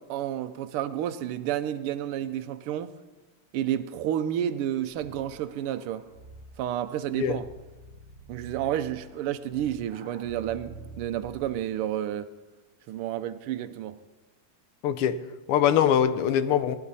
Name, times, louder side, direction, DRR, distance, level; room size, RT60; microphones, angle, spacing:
voice 1, 0.0-2.9 3.5-6.1 6.6-7.5 8.3-12.3 12.9-14.0, right 11 dB, 90° right, 1.5 m, -30 dB
sound 1, 4.9-11.8, right 3 dB, 45° right, 0.9 m, -48 dB
voice 2, 14.8-16.8, left 9 dB, 90° left, 1.7 m, -23 dB
18.5 x 10.5 x 4.1 m
omnidirectional pair, 2.4 m